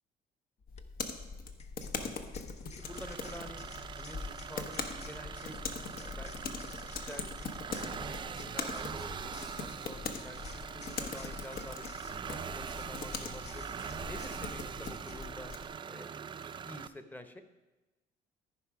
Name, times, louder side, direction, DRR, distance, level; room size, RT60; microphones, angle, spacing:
sound 1, 0.6-0.8 1.6-15.3, left 6 dB, 40° left, 0.7 m, -55 dB
sound 2, 0.7-15.7, left 4 dB, 60° left, 1.0 m, -42 dB
voice 1, 2.0-2.3 2.8-3.6 4.0-5.6 6.0-6.5 6.8-7.3 7.7-11.9 12.3-13.6 14.0-15.5 15.9-16.1 16.6-17.4, left 1 dB, 10° left, 8 dB, 0.9 m, -49 dB
sound 3, 2.8-16.9, right 7 dB, 30° right, 0.4 m, -43 dB
14.0 x 5.3 x 4.9 m, 1.1 s
cardioid pair, 110°, 17 cm